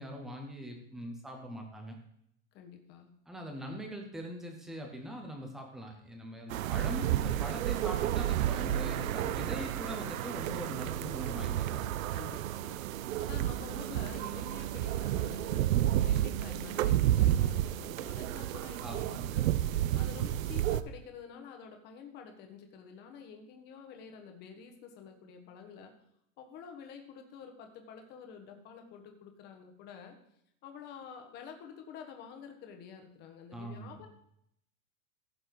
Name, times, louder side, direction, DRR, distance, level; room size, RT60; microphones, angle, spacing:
voice 1, 0.0-2.0 3.3-11.8 18.8-19.2 33.5-34.0, equal, ahead, 2 dB, 0.4 m, -42 dB
voice 2, 2.5-3.1 12.1-15.7 16.0-19.5 19.9-25.9 26.4-30.2 30.6-34.1, left 7 dB, 25° left, 4 dB, 1.4 m, -49 dB
sound 1, 6.5-20.8, right 12 dB, 85° right, 0.7 m, -31 dB
15.5 x 6.7 x 3.9 m, 0.74 s
supercardioid pair, 170°, 39 cm